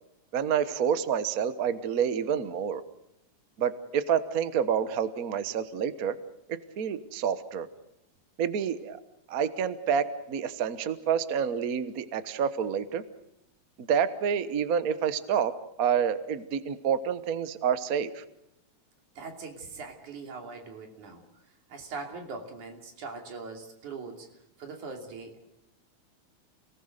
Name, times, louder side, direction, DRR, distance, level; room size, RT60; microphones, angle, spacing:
voice 1, 0.3-2.8 3.6-6.1 6.8-7.7 8.4-9.0 9.3-13.0 13.9-15.5 15.8-18.2, right 7 dB, 60° right, 12 dB, 0.9 m, -28 dB
voice 2, 19.2-21.2 21.7-24.3 24.6-25.4, right 4 dB, 85° right, 3 dB, 4.3 m, -41 dB
29.0 x 19.0 x 6.7 m, 0.80 s
omnidirectional pair, 3.4 m